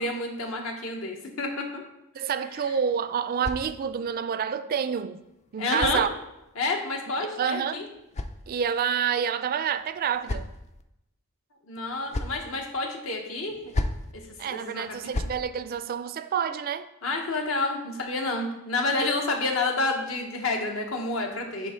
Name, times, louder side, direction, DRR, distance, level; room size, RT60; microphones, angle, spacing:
voice 1, 0.0-1.8 2.6-2.7 5.6-6.0 6.6-7.9 11.7-13.6 14.1-15.1 17.0-21.7, left 3 dB, 70° left, 1.2 m, -29 dB
voice 2, 2.1-5.2 5.5-6.1 7.4-7.8 8.5-10.5 14.4-16.9 19.0-19.1, right 7 dB, 45° right, 0.3 m, -28 dB
sound 1, 2.5-4.2 5.2-6.6 7.6-8.9 9.8-10.8 11.7-12.5 13.5-14.1 14.9-15.4, left 2 dB, 35° left, 0.4 m, -35 dB
10.5 x 3.7 x 3.7 m
head